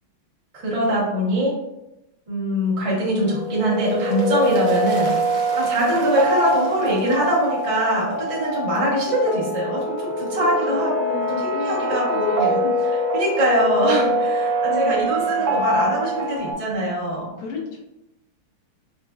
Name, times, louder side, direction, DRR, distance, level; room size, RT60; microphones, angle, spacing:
voice 1, 0.5-1.6 2.3-5.2 5.6-12.6 13.1-17.3, right 1 dB, 40° right, -6 dB, 0.4 m, -23 dB
sound 1, 3.0-8.5 8.7-8.8, left 2 dB, 60° left, 1.2 m, -43 dB
sound 2, 3.2-16.5, right 1 dB, 85° right, 0.8 m, -24 dB
voice 2, 11.5-12.6 13.8-14.0 14.7-15.1 15.4-16.0 17.4-17.8, left 2 dB, 80° left, -1 dB, 1.7 m, -32 dB
4.3 x 2.6 x 2.3 m, 0.90 s
omnidirectional pair, 2.3 m